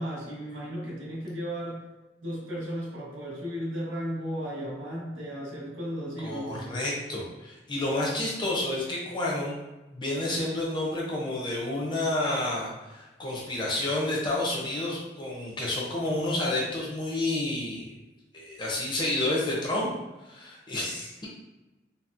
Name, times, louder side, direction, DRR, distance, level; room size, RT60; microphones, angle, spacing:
voice 1, 0.0-1.8 2.2-6.7, equal, 85° right, -4 dB, 1.0 m, -35 dB
voice 2, 6.2-9.6 9.9-17.9 18.3-19.9 20.3-21.3, left 1 dB, 25° left, -4 dB, 0.6 m, -30 dB
4.0 x 2.0 x 2.4 m, 1.1 s
head